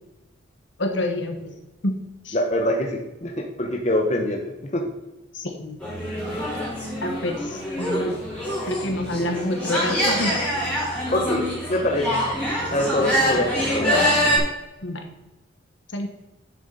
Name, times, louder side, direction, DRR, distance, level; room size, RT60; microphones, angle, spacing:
voice 1, 0.8-1.5 1.8-2.0 2.2-2.3 5.3-5.8 7.0-8.2 8.7-10.3 14.8-15.0 15.9-16.1, left 1 dB, 70° left, 4 dB, 1.4 m, -27 dB
voice 2, 2.3-4.8 11.1-12.2 12.7-14.4, left 1 dB, 35° left, 1 dB, 1.0 m, -24 dB
sound 1, 5.8-14.4, equal, 5° left, 3.9 m, -25 dB
10.0 x 7.3 x 4.1 m, 1.0 s
head